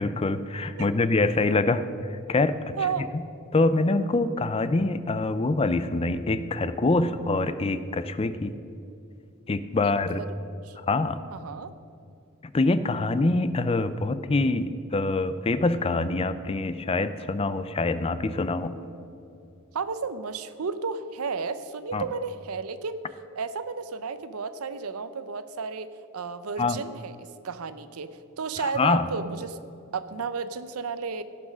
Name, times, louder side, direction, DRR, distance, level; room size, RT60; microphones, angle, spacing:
voice 1, 0.0-1.8 2.1-3.2 3.5-8.5 9.5-10.3 10.9-11.2 12.5-18.8 21.9-22.0 26.6-26.8 28.6-29.1, left 3 dB, 25° left, 13 dB, 0.4 m, -25 dB
voice 2, 2.8-3.1 10.2-10.3 10.6-10.8 11.3-11.7 19.7-23.0 23.4-25.9 26.1-27.2 27.4-29.6 29.9-31.2, right 5 dB, 85° right, 13 dB, 0.6 m, -32 dB
16.5 x 6.1 x 6.1 m, 2.6 s
head